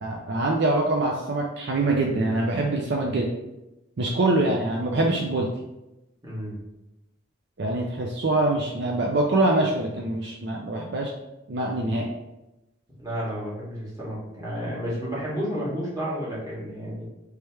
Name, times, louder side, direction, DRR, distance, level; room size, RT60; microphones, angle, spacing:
voice 1, 0.0-3.3 4.0-5.5 7.6-11.1 11.5-12.1, right 2 dB, 55° right, 0 dB, 0.5 m, -24 dB
voice 2, 6.2-6.6 13.0-17.0, equal, 15° right, -7 dB, 1.6 m, -31 dB
3.4 x 3.3 x 4.5 m, 0.97 s
head